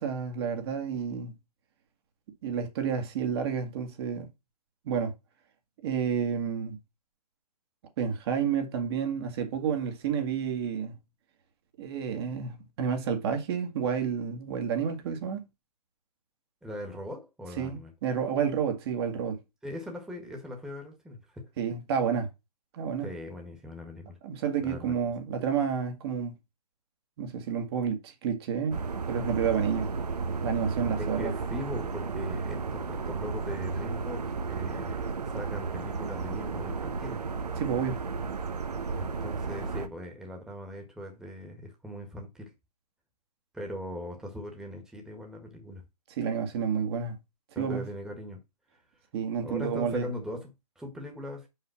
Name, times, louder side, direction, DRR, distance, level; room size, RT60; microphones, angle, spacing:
voice 1, 0.0-1.3 2.4-4.3 4.9-5.1 5.8-6.8 8.0-11.0 11.8-15.4 17.6-19.4 21.6-22.3 22.7-23.1 24.2-26.3 27.2-28.8 29.1-29.9 30.4-31.3 37.6-38.0 46.2-47.2 47.6-47.9 49.1-50.1, right 7 dB, 40° right, 1.8 m, -30 dB
voice 2, 16.6-17.9 19.6-21.5 23.0-24.2 24.6-24.9 31.0-37.2 38.9-42.5 43.5-45.8 47.5-48.4 49.4-51.5, left 1 dB, 5° right, 1.6 m, -40 dB
sound 1, 28.7-39.9, right 4 dB, 75° right, 1.2 m, -33 dB
5.7 x 5.5 x 5.7 m
hypercardioid pair, 140°, 20 cm